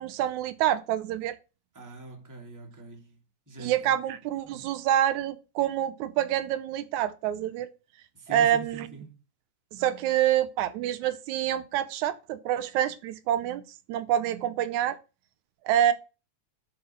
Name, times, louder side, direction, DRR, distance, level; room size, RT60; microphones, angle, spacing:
voice 1, 0.0-1.4 3.6-7.7 8.3-8.9 9.7-13.6 13.9-15.0 15.7-15.9, right 11 dB, 85° right, 2.1 m, -27 dB
voice 2, 1.7-3.2 3.5-4.0 4.4-4.6 8.1-9.2, right 3 dB, 5° right, 1.6 m, -44 dB
7.9 x 4.2 x 5.6 m
omnidirectional pair, 3.4 m